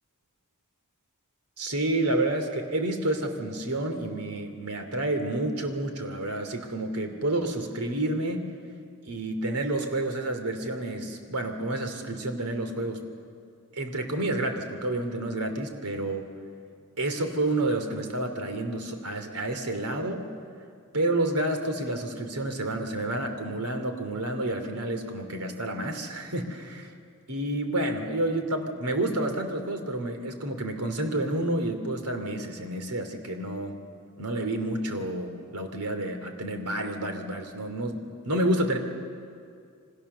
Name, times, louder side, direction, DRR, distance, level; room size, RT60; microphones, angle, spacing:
voice 1, 1.6-8.5 9.0-13.0 13.7-16.2 17.0-20.3 20.9-26.9 27.3-33.8 34.2-38.8, right 1 dB, 85° right, 6 dB, 2.9 m, -29 dB
27.5 x 24.5 x 6.8 m, 2.4 s
head